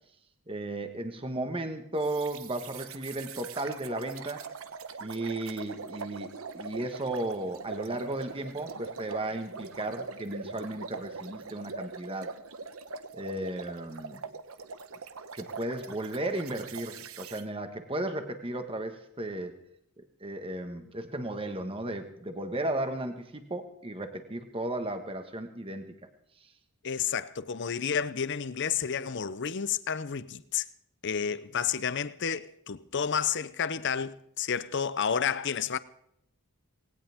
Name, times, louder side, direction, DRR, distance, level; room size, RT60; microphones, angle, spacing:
voice 1, 0.5-4.5 5.0-12.3 13.1-14.2 15.3-19.5 20.2-25.9, right 1 dB, 25° right, 1.5 m, -35 dB
sound 1, 2.0-17.4, right 4 dB, 70° right, 1.1 m, -42 dB
voice 2, 26.8-30.6 31.0-35.8, left 7 dB, 55° left, 0.7 m, -30 dB
19.5 x 17.5 x 3.6 m
head